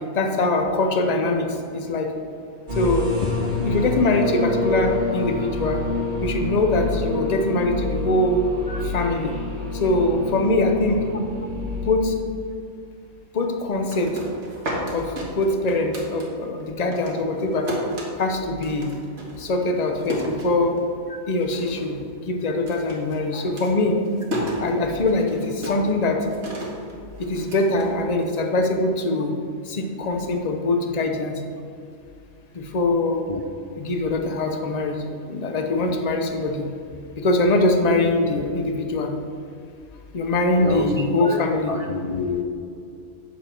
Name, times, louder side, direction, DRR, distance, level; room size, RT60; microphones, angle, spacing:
voice 1, 0.1-1.5 1.7-2.1 2.7-3.1 3.6-5.9 6.2-8.4 8.8-9.4 9.7-11.0 11.9-12.1 13.3-14.1 14.9-17.7 18.2-18.9 19.4-20.8 21.3-22.0 22.3-24.0 24.6-26.2 27.2-29.3 29.6-31.4 32.5-33.2 33.8-36.7 37.2-39.1 40.1-41.7, left 2 dB, 35° left, 4 dB, 0.8 m, -22 dB
sound 1, 2.7-11.9, left 3 dB, 40° right, 1.6 m, -27 dB
sound 2, 13.7-16.6 16.9-21.1 21.4-22.0 22.2-28.5, equal, 65° right, 1.9 m, -33 dB
voice 2, 40.6-40.9 41.2-42.4, left 4 dB, 65° left, 3 dB, 0.3 m, -28 dB
8.3 x 6.9 x 4.4 m, 2.4 s
omnidirectional pair, 1.3 m